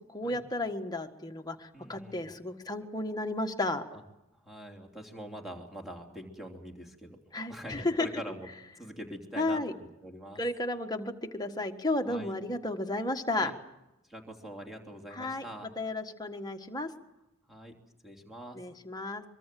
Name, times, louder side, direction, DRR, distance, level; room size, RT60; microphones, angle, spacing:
voice 1, 0.1-3.8 7.3-8.1 9.4-9.7 10.4-13.5 15.1-15.4 15.8-16.9 18.5-19.2, left 2 dB, 20° left, 4 dB, 1.6 m, -33 dB
voice 2, 1.7-2.3 3.9-4.0 4.4-7.2 7.5-8.5 8.8-10.4 12.1-12.3 13.3-13.5 14.1-15.7 17.5-17.7 18.0-18.6, equal, ahead, 0 dB, 3.2 m, -44 dB
24.0 x 24.0 x 7.7 m, 0.94 s
head